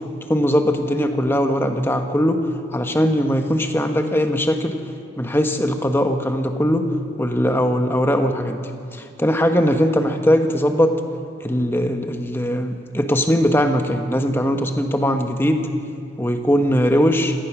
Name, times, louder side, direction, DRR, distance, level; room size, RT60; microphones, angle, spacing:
voice 1, 0.3-2.4 2.7-4.8 5.2-6.9 7.2-8.6 8.9-11.0 11.4-15.7 16.2-17.3, equal, 10° left, 5 dB, 1.3 m, -20 dB
26.0 x 18.0 x 6.2 m, 2.3 s
head